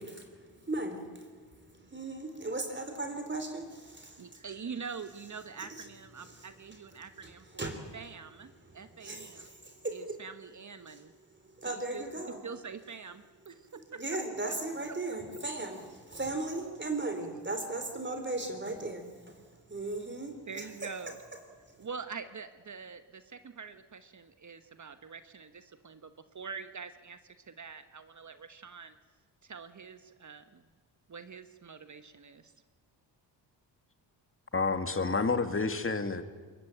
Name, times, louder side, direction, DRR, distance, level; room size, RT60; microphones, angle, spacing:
voice 1, 0.0-4.4 5.8-5.9 6.2-6.5 7.2-7.3 7.6-7.8 8.6-10.2 10.9-11.0 11.6-12.4 14.0-20.7 21.8-21.9, right 2 dB, 25° right, 5 dB, 3.9 m, -37 dB
voice 2, 4.2-9.5 9.9-11.1 11.6-12.0 12.4-14.2 16.5-16.8 20.5-21.2 21.8-27.2 27.5-29.0 29.4-30.7 31.1-32.5, right 5 dB, 40° right, 10 dB, 1.3 m, -45 dB
voice 3, 34.5-36.2, left 4 dB, 30° left, 9 dB, 2.1 m, -29 dB
22.0 x 21.5 x 9.1 m, 1.4 s
cardioid pair, 65°, 44 cm